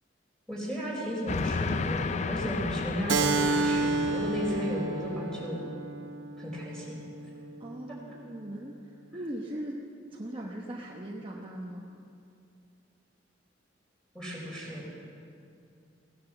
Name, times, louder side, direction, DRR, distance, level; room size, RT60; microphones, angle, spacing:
voice 1, 0.5-5.6 6.4-7.0 7.9-8.0 14.1-14.9, equal, 5° left, -4 dB, 4.2 m, -34 dB
Train, 1.3-5.2, left 4 dB, 40° left, 0.4 m, -33 dB
Keyboard (musical), 3.1-8.2, right 3 dB, 80° right, 0.8 m, -31 dB
voice 2, 7.6-9.8 10.1-11.9, right 1 dB, 30° right, -2 dB, 1.0 m, -39 dB
17.0 x 10.0 x 7.2 m, 2.5 s
head